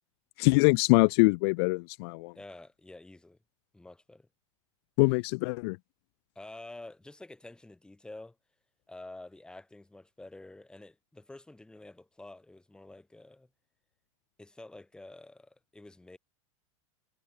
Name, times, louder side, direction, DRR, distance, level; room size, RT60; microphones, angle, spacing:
voice 1, 0.4-2.3 5.0-5.8, left 30 dB, 50° left, 0.6 m, -24 dB
voice 2, 2.3-3.4 3.7-4.3 6.4-8.4 8.9-13.5 14.4-16.2, left 2 dB, 5° left, 2.3 m, -49 dB
supercardioid pair, 135°, 17 cm